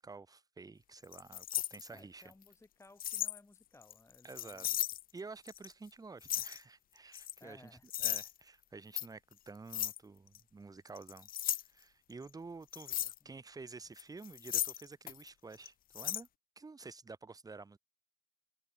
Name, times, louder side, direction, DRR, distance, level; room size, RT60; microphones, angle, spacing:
voice 1, 0.0-2.2 4.2-4.7 5.1-7.6 8.0-11.3 11.6-13.0 13.2-16.3 16.6-17.8, right 4 dB, 25° right, 0.8 m, -50 dB
sound 1, 1.0-2.3 3.0-3.4 3.8-5.0 5.5-5.7 6.2-6.6 7.1-7.4 7.9-8.3 8.9-9.1 9.7-10.0 10.3-10.4 11.0-11.6 12.7-13.2 14.0-15.3 15.5-15.7 15.9-16.2, left 12 dB, 65° left, 0.4 m, -36 dB
voice 2, 1.9-4.8 7.4-8.1 12.9-13.4, left 2 dB, 15° left, 4.1 m, -60 dB
open air
cardioid pair, 70°, 16 cm